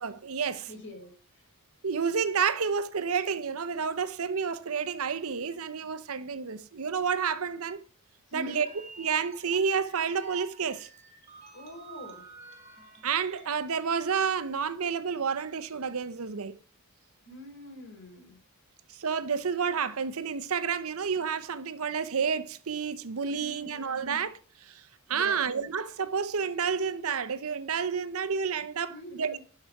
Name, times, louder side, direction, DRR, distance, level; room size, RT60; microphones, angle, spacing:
voice 1, 0.0-0.7 1.8-7.8 8.3-8.7 9.0-10.9 13.0-16.5 18.9-24.8 25.1-29.4, right 6 dB, 75° right, 0.7 m, -30 dB
voice 2, 0.6-1.4 8.3-8.6 11.5-12.2 17.3-18.4 23.3-24.3 25.1-25.4 28.9-29.4, left 1 dB, 55° left, 3.4 m, -45 dB
sound 1, 8.5-13.6, right 5 dB, 30° right, 4.5 m, -49 dB
11.0 x 5.6 x 5.8 m
head